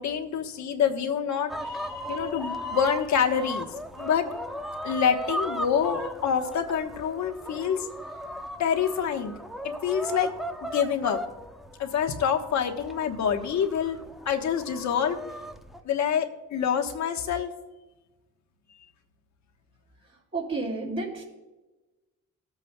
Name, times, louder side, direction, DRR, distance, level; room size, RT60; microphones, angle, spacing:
voice 1, 0.0-3.7 4.0-4.3 4.8-7.9 8.6-9.3 9.8-10.3 10.7-11.2 11.8-14.0 14.2-15.2 15.8-17.5, left 8 dB, 65° left, 5 dB, 1.2 m, -26 dB
sound 1, 1.5-15.8, equal, ahead, 0.7 m, -37 dB
voice 2, 20.0-21.2, right 3 dB, 45° right, -6 dB, 3.0 m, -32 dB
18.5 x 8.3 x 2.3 m, 1.1 s
cardioid pair, 90°, 30 cm